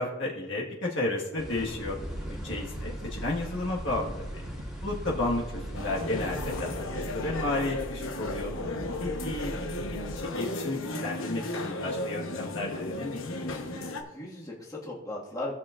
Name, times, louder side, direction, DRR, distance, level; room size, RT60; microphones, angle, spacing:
voice 1, 0.0-2.0 2.4-4.1 4.8-8.5 9.0-9.5 10.1-13.3, left 2 dB, 65° left, -3 dB, 1.6 m, -32 dB
sound 1, 1.4-6.6, equal, ahead, 1.9 m, -41 dB
sound 2, 2.0-10.3, right 1 dB, 70° right, 1.3 m, -40 dB
voice 2, 2.2-2.7 8.8-9.2 14.1-15.5, left 2 dB, 20° left, -5 dB, 1.8 m, -38 dB
sound 3, 5.7-14.0, left 2 dB, 80° left, 1.1 m, -34 dB
17.5 x 6.6 x 2.5 m, 1.1 s
head